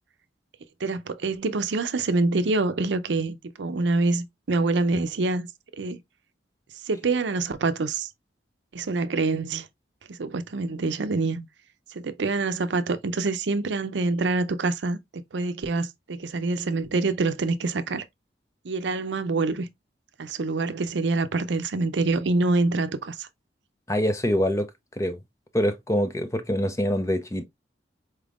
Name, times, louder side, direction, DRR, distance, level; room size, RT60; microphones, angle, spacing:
voice 1, 0.8-5.5 5.8-6.0 6.8-8.1 8.7-9.7 10.1-11.5 11.9-15.0 15.3-18.0 18.6-19.7 20.2-23.3, right 3 dB, 80° right, 0.6 m, -26 dB
voice 2, 23.9-24.7 25.0-25.2 25.5-27.4, equal, 15° left, 0.5 m, -25 dB
4.4 x 3.5 x 2.4 m
head